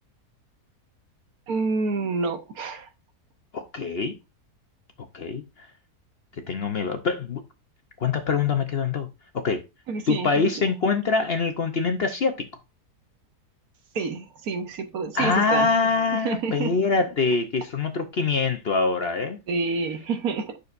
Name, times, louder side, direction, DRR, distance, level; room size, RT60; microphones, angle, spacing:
voice 1, 1.5-2.9 9.9-10.3 13.9-15.7 16.1-16.7 19.5-20.6, right 4 dB, 70° right, 1.5 m, -28 dB
voice 2, 3.5-4.1 5.1-5.7 6.5-7.4 8.0-9.1 9.3-9.6 10.1-12.5 15.1-19.4, left 4 dB, 50° left, 0.8 m, -24 dB
9.5 x 6.5 x 2.5 m
omnidirectional pair, 1.7 m